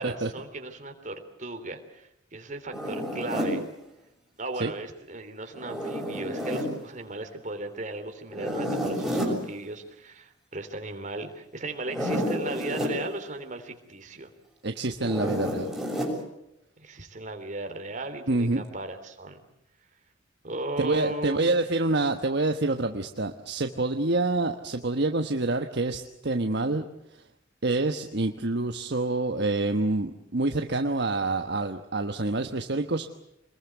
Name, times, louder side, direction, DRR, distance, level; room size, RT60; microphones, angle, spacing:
voice 1, 0.0-3.6 4.4-14.3 16.8-19.4 20.4-21.6, right 2 dB, 40° right, 6 dB, 3.4 m, -36 dB
Zipper (clothing), 2.7-3.6 5.5-6.7 8.3-9.4 11.8-13.0 15.0-16.2, equal, ahead, 6.8 m, -30 dB
voice 2, 14.6-15.7 18.3-18.6 20.8-26.9 27.1-27.2 27.6-33.1, right 2 dB, 60° right, 6 dB, 1.3 m, -27 dB
27.5 x 21.0 x 8.1 m, 0.83 s
head